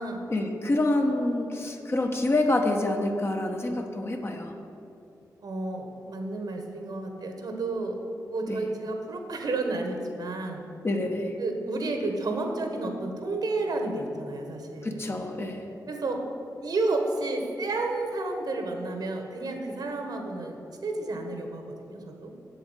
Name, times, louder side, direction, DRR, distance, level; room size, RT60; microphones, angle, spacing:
voice 1, 0.3-4.5 8.5-8.6 10.8-11.3 14.8-15.6, left 2 dB, 35° left, 3 dB, 1.2 m, -27 dB
voice 2, 5.4-8.0 8.3-10.6 11.4-15.1 15.9-16.2 16.6-22.3, right 2 dB, 70° right, 4 dB, 1.5 m, -31 dB
7.9 x 7.4 x 8.3 m, 2.8 s
cardioid pair, 70°, 7 cm